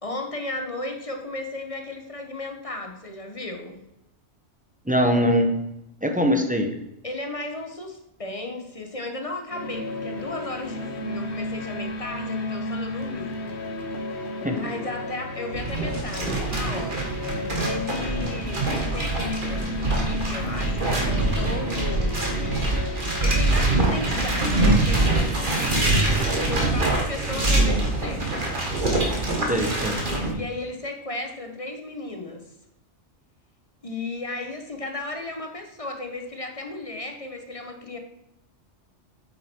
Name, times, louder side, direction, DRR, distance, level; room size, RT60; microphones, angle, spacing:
voice 1, 0.0-3.8 7.0-13.6 14.1-17.2 17.6-19.6 20.0-22.3 23.2-26.2 26.4-28.6 30.3-32.5 33.8-38.0, left 2 dB, 30° left, 4 dB, 1.3 m, -34 dB
voice 2, 4.9-5.6 6.0-6.7 14.4-14.6 29.5-30.1, equal, 5° right, 4 dB, 1.0 m, -22 dB
sound 1, 9.5-23.6, left 1 dB, 65° left, 1.4 m, -34 dB
sound 2, 15.5-30.3, right 2 dB, 45° right, 2.0 m, -24 dB
8.8 x 8.3 x 4.6 m, 0.83 s
omnidirectional pair, 1.2 m